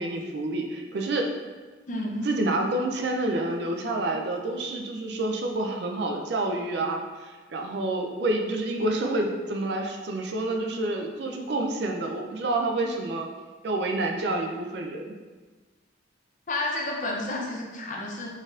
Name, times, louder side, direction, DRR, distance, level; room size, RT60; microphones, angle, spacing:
voice 1, 0.0-1.3 2.2-13.3 13.6-15.2, right 2 dB, 60° right, 2 dB, 0.4 m, -28 dB
voice 2, 1.9-2.3 16.5-18.3, left 2 dB, 40° left, -1 dB, 0.6 m, -30 dB
4.0 x 3.8 x 2.4 m, 1.3 s
head